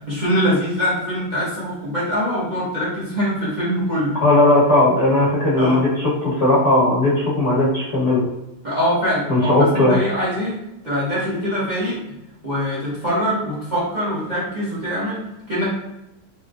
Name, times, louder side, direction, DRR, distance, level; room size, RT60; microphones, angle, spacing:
voice 1, 0.1-4.1 5.6-5.8 8.6-10.6 10.8-12.0 12.4-15.2 15.5-15.7, equal, 30° right, -8 dB, 0.9 m, -23 dB
voice 2, 4.2-8.2 9.3-10.0, left 1 dB, 45° left, -7 dB, 1.2 m, -17 dB
4.4 x 2.9 x 2.4 m, 0.93 s
omnidirectional pair, 2.0 m